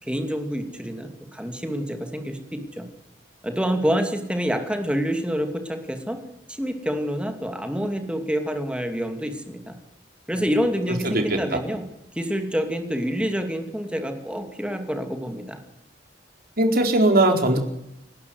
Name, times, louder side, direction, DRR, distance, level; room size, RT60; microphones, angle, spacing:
voice 1, 0.0-2.9 3.4-6.2 6.5-9.7 10.3-11.8 12.1-15.6, equal, 5° right, 5 dB, 2.7 m, -27 dB
voice 2, 11.1-11.6 16.6-17.6, right 1 dB, 55° right, 4 dB, 4.3 m, -19 dB
30.0 x 12.0 x 8.1 m, 0.82 s
head